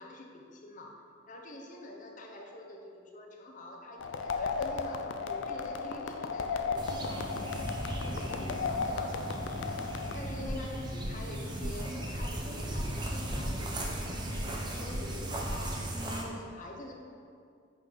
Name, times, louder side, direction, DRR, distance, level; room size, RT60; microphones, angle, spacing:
voice 1, 0.0-16.9, left 1 dB, 45° left, 1 dB, 0.8 m, -46 dB
sound 1, 4.0-10.2, left 4 dB, 80° left, 0.4 m, -35 dB
sound 2, 6.8-16.2, right 1 dB, 25° right, 0.7 m, -37 dB
sound 3, 10.4-10.7 11.0-11.2 11.6-11.8 12.1-12.4 12.7-13.0 13.2-14.0 14.3-14.6 14.9-15.2 15.4-15.7, equal, 40° right, 1.2 m, -40 dB
6.0 x 6.0 x 3.9 m, 2.4 s
head